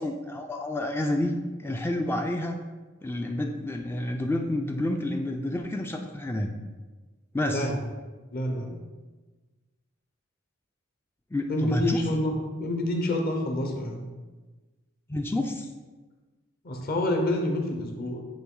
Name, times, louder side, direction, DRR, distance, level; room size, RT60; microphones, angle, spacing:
voice 1, 0.0-2.6 3.0-6.5 7.3-7.7 11.3-12.0 15.1-15.7, left 1 dB, 10° left, 4 dB, 0.3 m, -29 dB
voice 2, 8.3-8.8 11.5-12.3 12.6-14.0 16.6-18.2, left 1 dB, 50° left, 3 dB, 0.9 m, -27 dB
8.7 x 3.1 x 3.7 m, 1.3 s
head